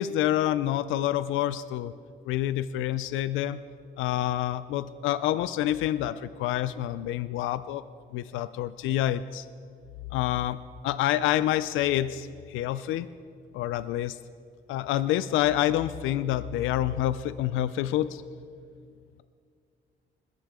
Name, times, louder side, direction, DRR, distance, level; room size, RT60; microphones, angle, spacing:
voice 1, 0.0-1.9 2.3-3.6 4.0-7.8 8.1-9.5 10.1-10.6 10.8-13.1 13.5-14.2 14.7-18.2, left 13 dB, 90° left, 15 dB, 0.4 m, -27 dB
21.5 x 11.5 x 3.6 m, 2.2 s
cardioid pair, 90°, 20 cm